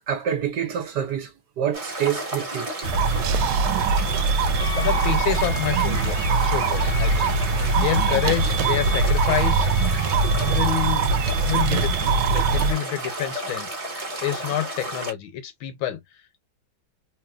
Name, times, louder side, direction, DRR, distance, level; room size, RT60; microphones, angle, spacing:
voice 1, 0.0-2.7, right 9 dB, 65° right, 1.2 m, -27 dB
sound 1, 1.7-15.1, right 1 dB, 25° right, 0.8 m, -32 dB
sound 2, 2.8-12.7, right 4 dB, 85° right, 1.4 m, -22 dB
Wind instrument woodwind instrument, 4.5-10.9, left 8 dB, 55° left, 0.7 m, -38 dB
voice 2, 4.8-9.7 10.4-11.1 11.5-13.7 14.2-16.0, left 11 dB, 80° left, 1.5 m, -28 dB
3.2 x 2.8 x 2.3 m
omnidirectional pair, 2.2 m